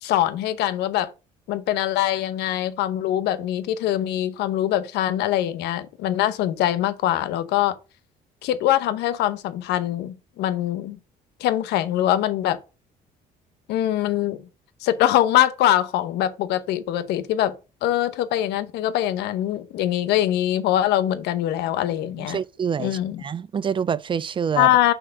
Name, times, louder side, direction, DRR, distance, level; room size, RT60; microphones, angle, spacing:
voice 1, 0.0-1.1 1.5-7.7 8.4-11.0 11.4-12.6 13.7-14.4 14.8-17.6 17.8-22.4 22.8-23.2 24.6-24.9, left 12 dB, 85° left, 0.9 m, -23 dB
voice 2, 22.3-24.7, right 7 dB, 30° right, 0.4 m, -26 dB
5.8 x 4.7 x 5.0 m
cardioid pair, 110°, 17 cm